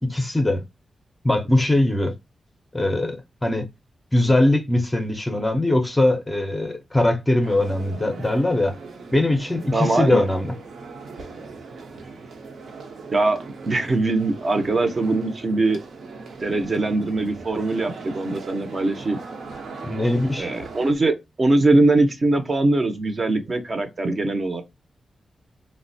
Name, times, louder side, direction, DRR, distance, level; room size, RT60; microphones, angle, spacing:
voice 1, 0.0-0.6 1.2-2.1 2.7-3.7 4.1-8.7 9.1-10.5 19.8-20.5, left 1 dB, 10° left, 0.5 m, -21 dB
sound 1, 7.4-20.9, right 4 dB, 75° right, 0.7 m, -39 dB
voice 2, 9.7-10.3 13.1-13.4 13.6-15.8 16.4-19.2 20.4-24.6, right 2 dB, 35° right, 0.6 m, -21 dB
3.8 x 2.1 x 2.5 m
wide cardioid pair, 145°, 0 cm